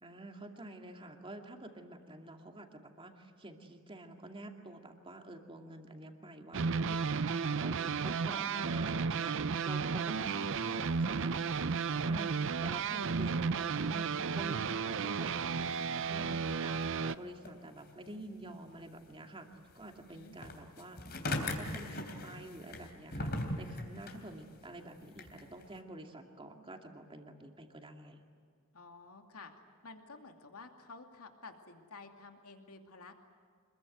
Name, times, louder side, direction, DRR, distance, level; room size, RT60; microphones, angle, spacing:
voice 1, 0.0-12.3 12.6-19.5 19.8-21.0 21.3-23.3 23.6-28.2, right 1 dB, 25° right, 3 dB, 2.5 m, -48 dB
sound 1, 6.5-17.1, right 5 dB, 60° right, 0.6 m, -33 dB
sound 2, 10.2-12.7 13.0-25.8, left 1 dB, 45° left, 3.3 m, -43 dB
voice 2, 28.7-29.5 29.8-33.2, left 4 dB, 90° left, 4 dB, 2.6 m, -51 dB
26.5 x 22.0 x 9.5 m, 2.1 s
head